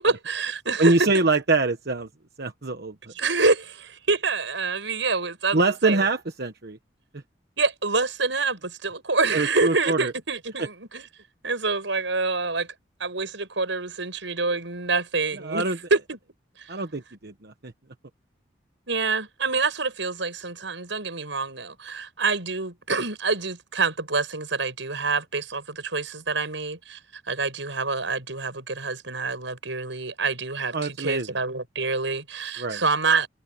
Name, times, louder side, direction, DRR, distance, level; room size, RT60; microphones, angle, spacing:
voice 1, 0.0-1.2 3.1-6.0 7.6-11.1 11.4-12.7 13.0-16.2 16.6-16.7 18.9-27.0 27.3-33.3, right 4 dB, 85° right, 6.2 m, -26 dB
voice 2, 0.8-2.1 2.4-2.9 5.5-6.8 7.1-7.2 9.3-10.1 10.6-10.7 15.4-15.8 16.7-17.7 30.7-31.3 32.6-32.8, right 3 dB, 60° right, 1.2 m, -24 dB
head